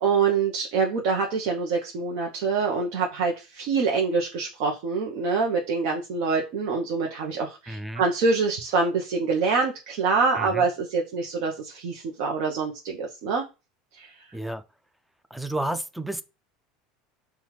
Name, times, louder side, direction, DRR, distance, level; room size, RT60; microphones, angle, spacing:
voice 1, 0.0-13.4 13.9-14.2, right 4 dB, 65° right, 0.8 m, -25 dB
voice 2, 7.7-8.0 10.4-10.7 14.3-14.6 15.3-16.2, right 1 dB, ahead, 0.3 m, -31 dB
5.5 x 2.3 x 3.1 m
supercardioid pair, 145°, 3 cm